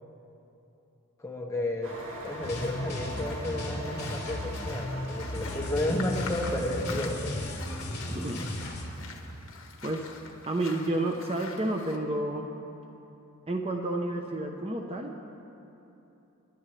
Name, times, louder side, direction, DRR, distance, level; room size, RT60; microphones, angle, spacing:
voice 1, 1.2-2.0 2.2-7.3, left 1 dB, 15° left, 0 dB, 1.2 m, -32 dB
sound 1, 1.8-7.1, equal, 60° right, 2.2 m, -42 dB
sound 2, 1.9-12.0, left 4 dB, 65° left, 1.5 m, -45 dB
sound 3, 2.4-8.8, left 1 dB, 45° left, 3.6 m, -35 dB
voice 2, 8.1-8.5 9.8-10.1 10.5-12.5 13.5-15.3, right 1 dB, 25° right, 2 dB, 0.8 m, -30 dB
29.5 x 11.0 x 3.3 m, 3.0 s
head